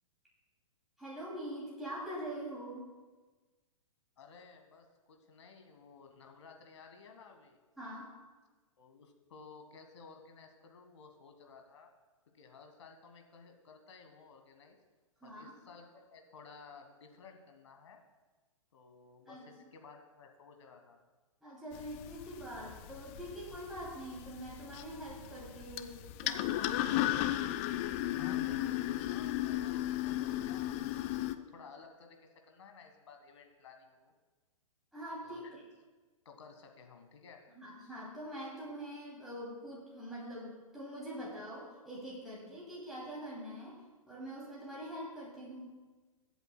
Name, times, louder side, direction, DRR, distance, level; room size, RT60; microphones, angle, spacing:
voice 1, 1.0-3.0 7.8-8.1 15.2-15.6 19.3-19.5 21.4-27.1 34.9-35.6 37.5-45.8, equal, ahead, -8 dB, 2.6 m, -44 dB
voice 2, 4.2-7.6 8.8-11.9 12.3-14.8 15.2-18.0 18.7-21.0 28.2-34.1 35.2-35.6 36.2-37.4, left 5 dB, 55° left, 4 dB, 1.6 m, -55 dB
sound 1, 21.7-31.4, left 14 dB, 25° left, 0.3 m, -35 dB
22.0 x 8.1 x 2.2 m, 1.3 s
figure-of-eight pair, 115°, 18 cm